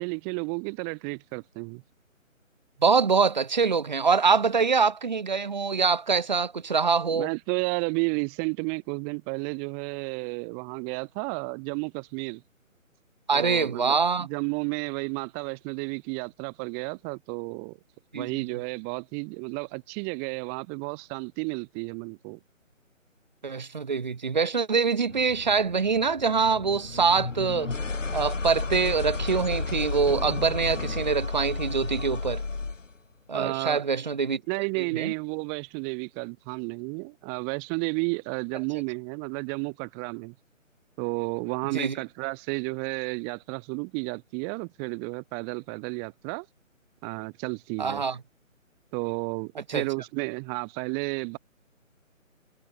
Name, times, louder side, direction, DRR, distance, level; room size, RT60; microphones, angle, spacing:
voice 1, 0.0-1.8 7.1-12.4 13.3-17.8 18.1-22.4 33.3-33.9 34.5-40.3 41.0-46.5 47.0-48.0 48.9-51.4, right 40 dB or more, 15° right, 4.1 m, -32 dB
voice 2, 2.8-7.3 13.3-14.3 18.1-18.3 23.4-27.7 28.1-32.4 33.3-34.4 34.8-35.1 41.7-42.0 47.8-48.2 49.7-49.8, right 5 dB, 35° right, 0.8 m, -24 dB
sound 1, 25.1-32.9, left 4 dB, 65° left, 5.8 m, -32 dB
figure-of-eight pair, 150°, 41 cm